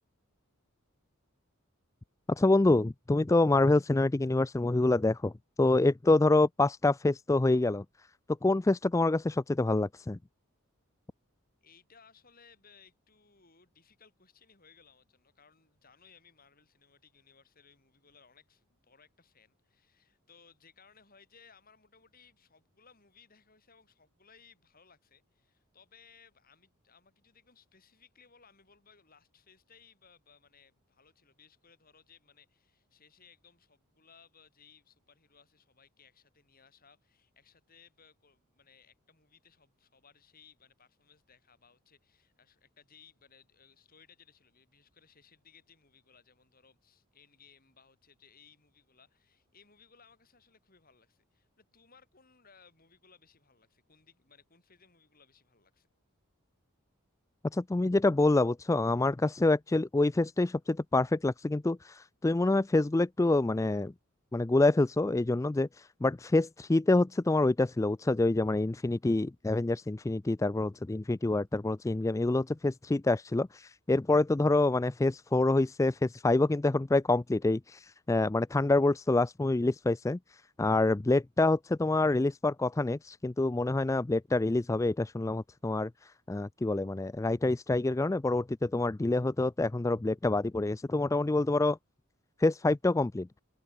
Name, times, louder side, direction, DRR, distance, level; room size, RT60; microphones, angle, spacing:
voice 1, 2.3-5.3 5.6-7.8 8.4-10.2 57.5-63.9 64.3-91.8 92.4-93.3, left 2 dB, 15° left, 0.3 m, -27 dB
voice 2, 11.6-55.9, left 6 dB, 40° left, 7.9 m, -62 dB
head